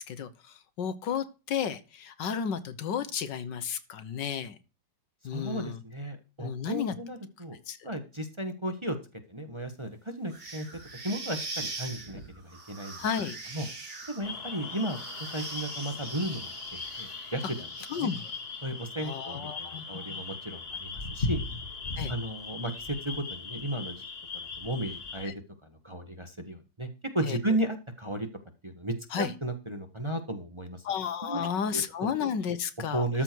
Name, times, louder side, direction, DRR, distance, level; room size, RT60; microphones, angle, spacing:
voice 1, 0.1-4.6 5.2-5.8 6.4-7.0 7.7-7.8 13.0-13.4 17.9-18.3 19.0-20.3 22.0-22.1 25.2-25.3 27.2-27.4 29.1-29.3 30.8-33.0, left 7 dB, 70° left, 13 dB, 1.7 m, -33 dB
voice 2, 5.3-7.6 7.8-9.0 9.3-10.7 10.9-13.0 13.5-13.7 14.1-15.0 15.3-17.7 17.9-18.1 18.6-21.4 22.1-24.0 24.6-25.3 25.6-26.9 27.1-28.3 28.6-30.8 31.3-31.5 31.7-32.1 32.9-33.2, right 1 dB, 15° right, 6 dB, 1.3 m, -34 dB
sound 1, 10.3-18.6, right 3 dB, 65° right, 3.7 m, -42 dB
sound 2, 14.2-25.3, left 3 dB, 35° left, 1.5 m, -38 dB
13.5 x 6.8 x 4.6 m, 0.32 s
omnidirectional pair, 2.0 m